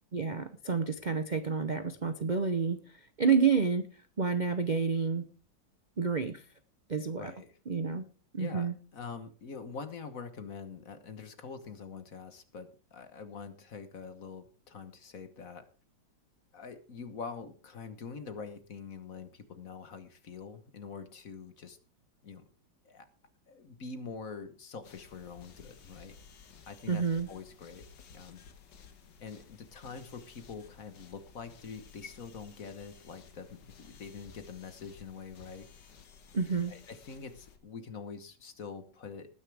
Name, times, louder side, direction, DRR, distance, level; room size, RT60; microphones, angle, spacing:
voice 1, 0.1-3.9 4.2-5.3 6.0-6.4 6.9-7.3 7.7-8.0 8.3-8.7 26.9-27.3 36.3-36.7, right 5 dB, 40° right, 10 dB, 0.6 m, -29 dB
voice 2, 7.2-7.5 8.4-15.7 16.5-21.8 22.2-22.4 22.8-23.1 23.5-26.1 26.7-27.8 28.1-28.4 29.2-35.9 36.3-39.3, left 5 dB, 50° left, 10 dB, 1.6 m, -45 dB
sound 1, 24.8-37.6, left 6 dB, 75° left, 2.1 m, -55 dB
19.0 x 9.6 x 3.5 m, 0.36 s
omnidirectional pair, 2.0 m